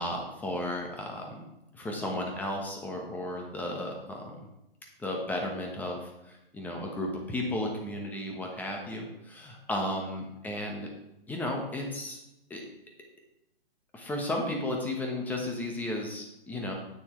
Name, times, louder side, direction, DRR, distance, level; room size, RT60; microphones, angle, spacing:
voice 1, 0.0-1.4 1.7-4.3 5.0-10.9 11.3-12.2 12.5-12.6 13.9-16.7, left 1 dB, 5° left, 1 dB, 1.2 m, -34 dB
9.5 x 9.1 x 3.2 m, 0.90 s
hypercardioid pair, 145°, 31 cm